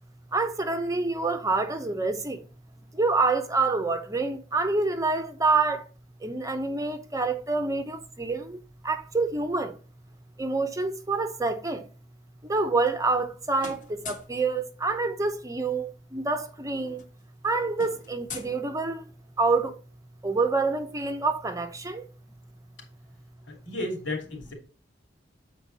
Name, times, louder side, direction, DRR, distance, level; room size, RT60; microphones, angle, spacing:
voice 1, 0.3-2.4 2.9-5.9 6.2-9.8 10.4-11.9 12.4-17.0 17.4-19.1 19.4-19.7 20.2-22.0, right 3 dB, 20° right, 0.8 m, -27 dB
sound 1, 12.5-13.3 13.6-14.4 15.8-15.9 16.1-16.3 16.6-19.2, left 4 dB, 45° left, 1.5 m, -44 dB
voice 2, 23.5-24.5, left 1 dB, 80° left, 2.8 m, -33 dB
7.9 x 4.6 x 4.0 m
head